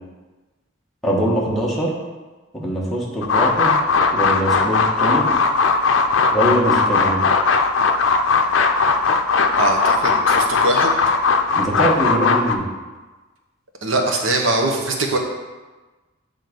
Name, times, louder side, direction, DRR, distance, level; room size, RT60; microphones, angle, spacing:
voice 1, 1.0-1.9 2.5-3.8 4.1-5.3 6.3-7.2 11.5-12.7, right 1 dB, ahead, -5 dB, 1.4 m, -22 dB
sound 1, 3.2-12.6, left 4 dB, 75° left, 0.5 m, -18 dB
voice 2, 9.6-11.0 13.8-15.2, right 2 dB, 90° right, 2 dB, 1.1 m, -21 dB
7.6 x 3.7 x 5.3 m, 1.2 s
head